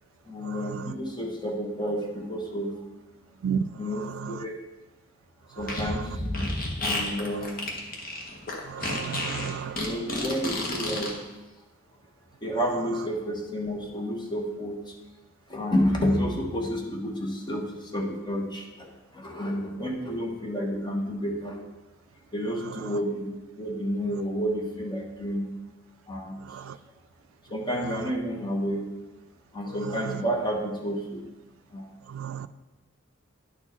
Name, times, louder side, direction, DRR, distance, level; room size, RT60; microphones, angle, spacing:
voice 1, 0.3-2.8 3.8-4.6 5.5-6.2 6.8-7.5 9.8-11.2 12.4-14.9 15.5-21.6 22.3-25.5 26.1-26.4 27.5-28.9 29.5-31.2 31.7-31.9, equal, 25° left, 0 dB, 1.2 m, -30 dB
Fart, 5.6-11.1, left 1 dB, 45° left, 1.3 m, -31 dB
voice 2, 8.7-9.8 26.7-26.8 32.1-32.5, right 7 dB, 90° right, 13 dB, 0.3 m, -31 dB
10.5 x 4.5 x 4.4 m, 1.1 s
head